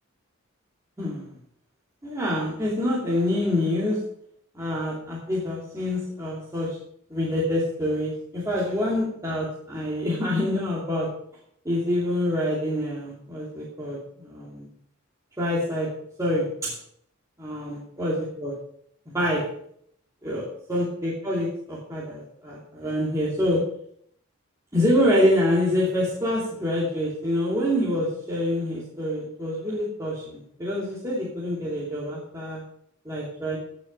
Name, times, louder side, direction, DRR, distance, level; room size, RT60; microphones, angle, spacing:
voice 1, 1.0-1.3 2.0-4.0 4.5-6.8 7.1-11.1 11.6-14.7 15.4-15.9 16.2-16.7 17.4-18.5 19.1-19.5 20.2-23.6 24.7-32.6 33.0-33.6, left 1 dB, 15° right, -6 dB, 2.6 m, -26 dB
16.5 x 6.3 x 5.4 m, 0.67 s
head